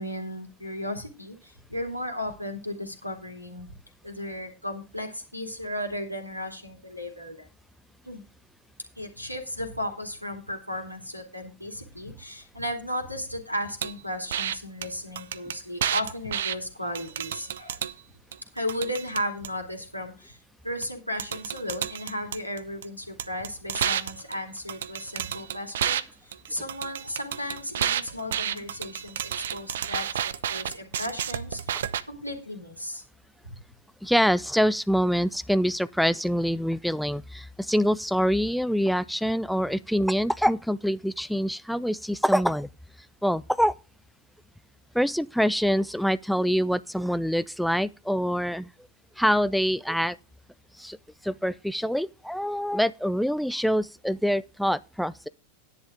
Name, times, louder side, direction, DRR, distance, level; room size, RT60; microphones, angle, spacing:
voice 1, 0.0-3.7 4.0-7.5 8.0-8.2 9.0-17.8 18.5-20.4 20.6-33.0 33.4-33.6, left 1 dB, 90° right, 2.6 m, -35 dB
sound 1, 13.8-13.9 14.3-14.5 14.8-14.9 15.2-16.6 17.0-17.9 18.3-19.5 20.8-20.9 21.2-22.8 23.2-26.0 26.3-32.0, right 10 dB, 60° right, 0.7 m, -30 dB
voice 2, 34.0-42.7 43.2-43.7 44.9-48.7 49.2-50.2 50.8-51.0 51.2-55.3, equal, ahead, 0.5 m, -25 dB
10.5 x 9.8 x 3.7 m
figure-of-eight pair, 90°, 0 cm